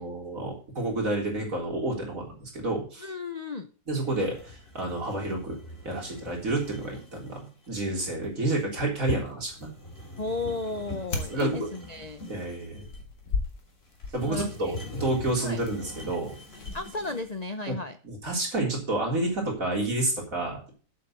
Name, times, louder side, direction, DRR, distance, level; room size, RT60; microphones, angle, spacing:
voice 1, 0.0-3.1 3.9-5.6 5.8-9.7 11.3-11.7 12.3-12.8 14.1-16.4 17.7-17.8 18.0-20.7, right 2 dB, 50° right, -1 dB, 4.1 m, -30 dB
voice 2, 3.0-3.7 10.2-12.2 14.2-15.0 15.4-15.6 16.7-18.0, left 3 dB, 60° left, 9 dB, 0.4 m, -34 dB
sound 1, 4.0-17.4, left 2 dB, 35° left, 3.7 m, -42 dB
sound 2, 9.4-17.5, left 3 dB, 85° left, 2.5 m, -39 dB
8.4 x 7.5 x 7.2 m, 0.39 s
omnidirectional pair, 1.8 m